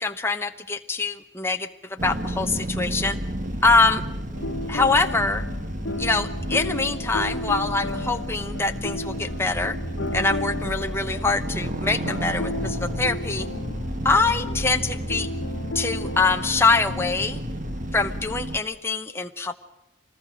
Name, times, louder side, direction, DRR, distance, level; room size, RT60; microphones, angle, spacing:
voice 1, 0.0-3.2 3.6-4.0 4.7-5.5 6.0-9.8 10.1-13.5 14.0-15.3 15.7-17.4 17.9-19.5, left 3 dB, 10° left, 5 dB, 0.9 m, -24 dB
sound 1, 2.0-18.6, equal, 40° right, 1.7 m, -31 dB
sound 2, 4.3-17.4, left 2 dB, 65° left, 1.3 m, -34 dB
25.0 x 19.5 x 6.3 m, 0.96 s
head